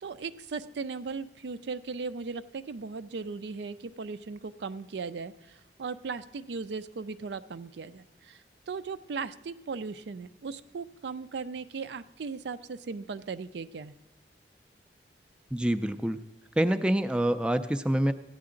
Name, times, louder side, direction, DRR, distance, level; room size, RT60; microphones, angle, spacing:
voice 1, 0.0-13.9, right 4 dB, 75° right, 13 dB, 0.4 m, -37 dB
voice 2, 15.5-16.2 16.6-18.1, right 1 dB, 5° right, 8 dB, 0.3 m, -26 dB
14.5 x 9.5 x 3.8 m, 1.0 s
head